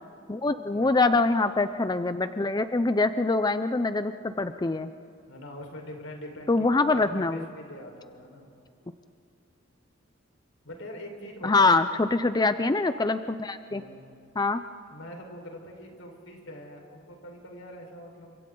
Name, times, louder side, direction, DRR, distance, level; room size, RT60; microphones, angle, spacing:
voice 1, 0.3-4.9 6.5-7.5 11.4-13.8 14.4-14.6, left 3 dB, 20° left, 10 dB, 0.5 m, -24 dB
voice 2, 5.3-8.5 10.6-11.8 13.7-14.2 14.9-18.4, left 1 dB, 75° left, 2 dB, 4.6 m, -43 dB
30.0 x 25.5 x 3.9 m, 2.6 s
head